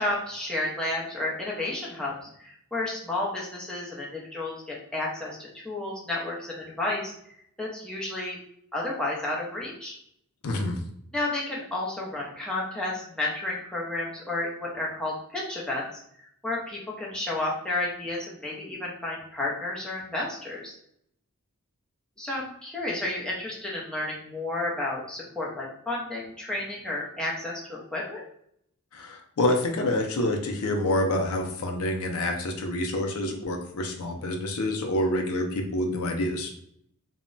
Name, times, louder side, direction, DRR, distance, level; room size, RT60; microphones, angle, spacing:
voice 1, 0.0-7.1 7.6-8.4 8.7-10.0 11.1-15.9 16.4-20.7 22.2-28.2, left 2 dB, 5° left, -5 dB, 0.6 m, -31 dB
voice 2, 10.4-10.8 28.9-36.5, left 1 dB, 65° left, 2 dB, 0.5 m, -27 dB
2.2 x 2.0 x 3.7 m, 0.70 s
head